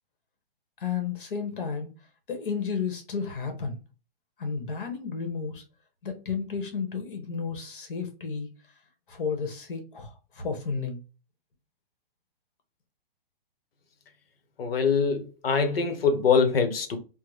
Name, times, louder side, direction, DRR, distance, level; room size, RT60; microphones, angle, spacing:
voice 1, 0.8-1.9 2.3-3.8 4.4-5.6 6.0-8.5 9.1-11.0, left 5 dB, 60° left, 1.3 m, -32 dB
voice 2, 14.6-17.0, left 5 dB, 80° left, 1.0 m, -23 dB
3.5 x 2.2 x 3.1 m
hypercardioid pair, 165°, 29 cm